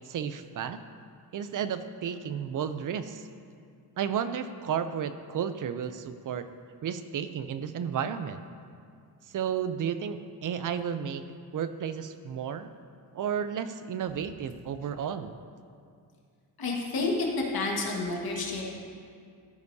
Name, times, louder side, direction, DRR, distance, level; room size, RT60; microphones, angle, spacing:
voice 1, 0.1-0.8 1.3-3.3 4.0-6.5 6.8-8.4 9.3-11.2 11.5-12.7 13.1-15.4, right 8 dB, 50° right, 11 dB, 0.5 m, -32 dB
voice 2, 16.6-17.3 17.5-18.8, left 3 dB, 60° left, -1 dB, 1.8 m, -30 dB
14.5 x 9.8 x 2.7 m, 2.2 s
wide cardioid pair, 145°, 42 cm